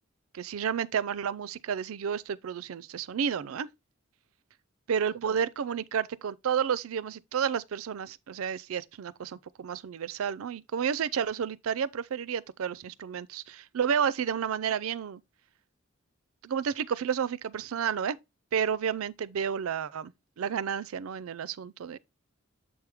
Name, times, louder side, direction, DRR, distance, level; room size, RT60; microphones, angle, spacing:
voice 1, 0.3-3.7 4.9-15.2 16.4-18.2 18.5-20.1 20.4-22.0, right 7 dB, 85° right, 0.4 m, -31 dB
7.2 x 4.7 x 3.5 m
head